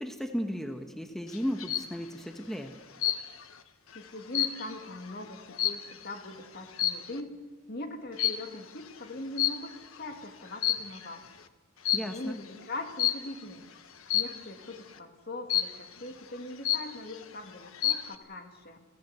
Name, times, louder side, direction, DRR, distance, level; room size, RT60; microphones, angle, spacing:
voice 1, 0.0-2.7 11.9-12.4, equal, ahead, 5 dB, 1.2 m, -35 dB
sound 1, 1.3-1.9 3.0-3.5 3.9-6.2 6.7-7.2 8.2-8.6 9.4-10.0 10.5-11.1 11.8-12.2 13.0-13.4 14.1-14.5 15.5-16.0 16.4-16.5 16.6-17.2 17.6-18.1, left 12 dB, 85° left, 1.3 m, -30 dB
voice 2, 3.9-7.4 7.7-11.2 11.9-13.6 14.1-18.8, left 2 dB, 50° left, 5 dB, 2.4 m, -41 dB
29.5 x 14.0 x 8.2 m, 1.3 s
head